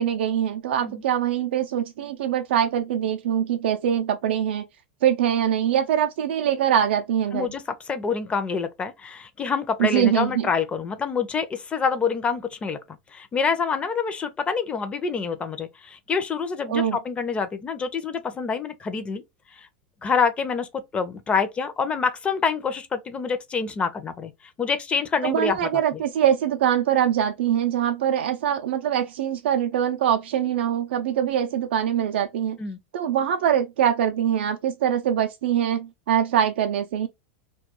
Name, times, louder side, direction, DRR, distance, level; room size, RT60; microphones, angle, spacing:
voice 1, 0.0-4.6 5.0-7.5 9.8-10.5 16.7-17.0 25.2-32.6 32.9-37.1, right 9 dB, 80° right, 0.3 m, -23 dB
voice 2, 7.3-19.2 19.5-19.7 20.0-24.3 24.6-26.0 32.6-32.8, left 5 dB, 20° left, 0.5 m, -27 dB
2.3 x 2.2 x 2.8 m
supercardioid pair, 125°, 6 cm